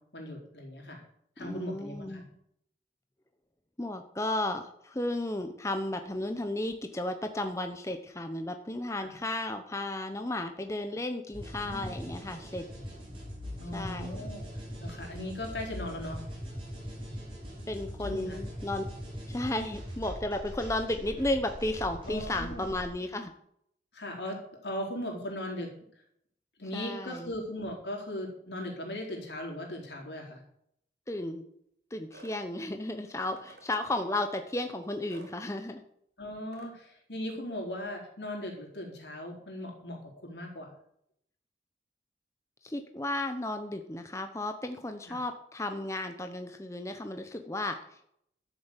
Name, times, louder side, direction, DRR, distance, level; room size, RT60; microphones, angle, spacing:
voice 1, 0.1-1.0 1.4-2.2 9.0-9.1 11.6-11.9 13.6-14.5 14.8-16.2 18.0-18.4 22.0-22.7 23.9-25.7 26.6-30.4 36.2-40.7 45.1-45.2, left 1 dB, 75° left, 0 dB, 4.2 m, -38 dB
voice 2, 1.4-2.2 3.8-12.6 13.7-14.3 17.7-18.8 19.3-23.3 26.7-27.3 31.1-31.4 31.9-35.8 42.6-48.1, left 1 dB, 15° left, 6 dB, 0.8 m, -34 dB
sound 1, 11.3-22.9, equal, 30° right, 5.4 m, -41 dB
sound 2, 32.1-32.4 33.4-33.7 35.1-35.3 36.5-36.7, right 2 dB, 65° right, 3.1 m, -52 dB
12.0 x 7.2 x 8.2 m, 0.72 s
head